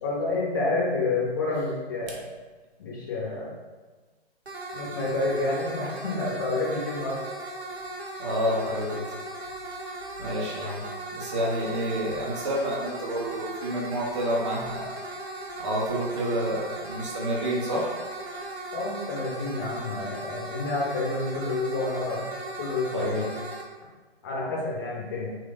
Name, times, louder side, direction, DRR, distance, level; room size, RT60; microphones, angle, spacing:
voice 1, 0.0-2.2 2.8-3.5 4.7-7.2 18.7-22.2 22.6-23.3 24.2-25.4, left 2 dB, 20° left, -4 dB, 0.5 m, -29 dB
sound 1, 4.5-23.6, right 2 dB, 80° right, 0.8 m, -38 dB
voice 2, 8.2-9.1 10.2-10.9 11.1-14.9 15.6-17.9 22.9-23.3, equal, 30° right, -4 dB, 0.5 m, -29 dB
3.2 x 2.1 x 3.3 m, 1.3 s
figure-of-eight pair, 125°, 31 cm